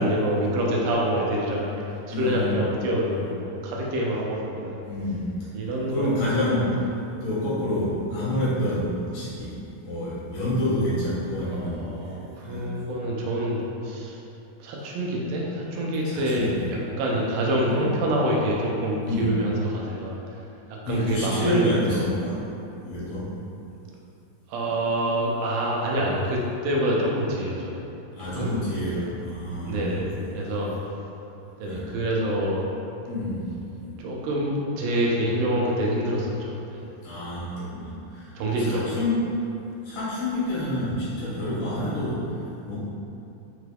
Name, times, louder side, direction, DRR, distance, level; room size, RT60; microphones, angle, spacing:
voice 1, 0.0-4.8 5.5-6.1 6.4-6.6 11.5-14.2 14.6-20.4 20.7-22.1 24.5-27.8 28.4-28.5 29.6-30.1 30.3-30.7 31.6-32.7 34.0-36.8 38.4-39.0, right 1 dB, 85° right, -3 dB, 2.3 m, -26 dB
voice 2, 2.1-2.6 3.1-3.2 4.9-5.4 5.9-6.7 7.2-11.9 12.4-12.7 16.0-16.5 17.7-17.8 19.0-19.3 20.9-22.4 22.8-23.3 28.2-30.5 31.6-31.9 33.1-33.9 37.0-39.2 39.8-42.4 42.6-42.8, left 1 dB, 75° left, -11 dB, 2.4 m, -28 dB
5.6 x 3.3 x 2.3 m, 2.9 s
omnidirectional pair, 4.0 m